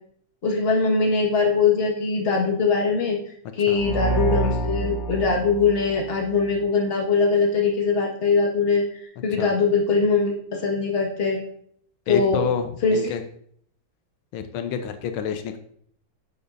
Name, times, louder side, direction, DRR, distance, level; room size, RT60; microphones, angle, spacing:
voice 1, 0.4-3.2 3.6-8.8 9.2-11.4 12.1-12.4 12.8-13.0, left 4 dB, 30° left, 0 dB, 1.5 m, -21 dB
sound 1, 3.7-6.6, right 2 dB, 45° left, 2.4 m, -27 dB
voice 2, 12.1-13.2 14.3-15.6, left 8 dB, 85° left, 8 dB, 1.5 m, -28 dB
11.0 x 7.0 x 2.6 m, 0.63 s
omnidirectional pair, 2.2 m